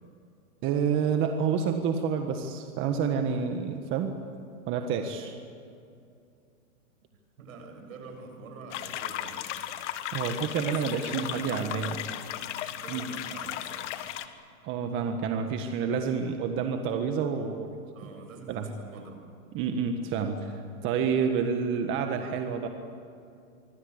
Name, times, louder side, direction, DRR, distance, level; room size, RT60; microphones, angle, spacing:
voice 1, 0.6-4.2 4.7-5.3 10.1-12.0 12.9-13.1 14.6-17.7 18.5-18.7 19.5-22.7, right 6 dB, 30° right, 5 dB, 1.6 m, -29 dB
voice 2, 7.4-9.5 10.6-12.3 12.7-13.9 17.9-19.2, right 3 dB, 65° right, 5 dB, 7.3 m, -46 dB
sound 1, 8.7-14.2, left 12 dB, 55° left, 1.9 m, -36 dB
25.0 x 25.0 x 8.1 m, 2.5 s
hypercardioid pair, 150°, 43 cm